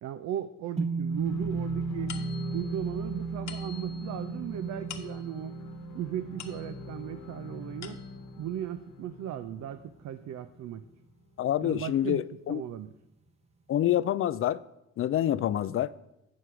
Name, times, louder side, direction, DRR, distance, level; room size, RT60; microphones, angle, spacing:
voice 1, 0.0-2.1 2.5-5.6 5.9-8.0 8.4-10.8 11.6-12.2 12.5-12.9, right 10 dB, 65° right, 0.5 m, -37 dB
sound 1, 0.8-9.2, right 4 dB, 20° right, 0.7 m, -36 dB
sound 2, 1.1-11.1, left 3 dB, 85° left, 1.1 m, -44 dB
sound 3, 2.1-7.1 7.5-8.4, left 7 dB, 65° left, 1.0 m, -48 dB
voice 2, 11.4-12.6 13.7-14.6 15.0-15.9, left 11 dB, 45° left, 0.4 m, -27 dB
7.7 x 6.3 x 5.7 m
cardioid pair, 90°, 30 cm